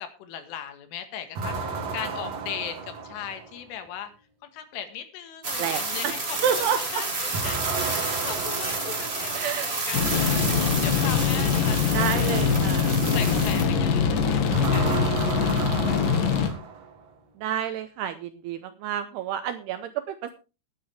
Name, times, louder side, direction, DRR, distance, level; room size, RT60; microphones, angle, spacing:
voice 1, 0.0-4.1 4.4-6.7 6.9-12.3 12.6-15.7, left 9 dB, 85° left, 8 dB, 4.2 m, -38 dB
sound 1, 1.4-3.7 7.3-9.8 14.5-17.1, right 5 dB, 60° right, 1.7 m, -33 dB
sound 2, 5.4-13.6, right 3 dB, 30° right, 1.2 m, -30 dB
voice 2, 5.6-6.2 6.4-7.0 9.3-9.7 11.9-13.0 17.4-20.3, right 9 dB, 80° right, 10 dB, 2.4 m, -29 dB
sound 3, 9.9-16.5, left 6 dB, 55° left, 2.7 m, -23 dB
19.5 x 8.9 x 3.4 m, 0.31 s
omnidirectional pair, 5.5 m